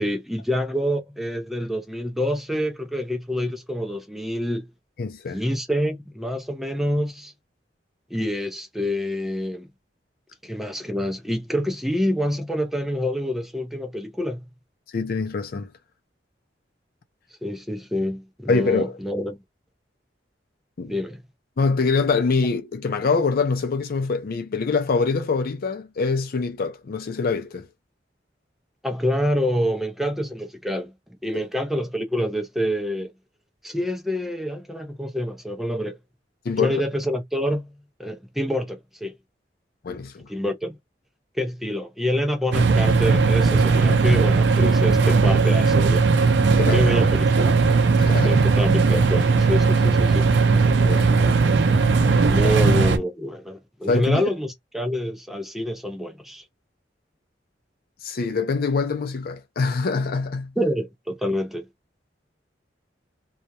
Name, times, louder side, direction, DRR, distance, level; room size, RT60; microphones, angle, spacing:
voice 1, 0.0-4.7 5.3-7.3 8.1-9.7 10.4-14.4 17.4-19.4 20.9-21.2 28.8-30.9 31.2-33.1 33.6-36.0 36.6-37.7 38.0-39.1 40.3-40.8 41.4-46.0 46.7-47.5 48.2-50.3 52.2-56.4 60.6-61.7, equal, ahead, 0.5 m, -27 dB
voice 2, 5.0-5.4 14.9-15.7 18.5-18.9 20.8-20.9 21.6-27.7 31.3-31.4 36.5-36.8 39.8-40.3 46.6-46.9 48.0-48.5 50.8-51.4 52.4-52.5 53.9-54.3 58.0-60.5, left 4 dB, 55° left, 0.5 m, -24 dB
sound 1, 42.5-53.0, right 4 dB, 75° right, 0.5 m, -18 dB
2.3 x 2.1 x 2.7 m
head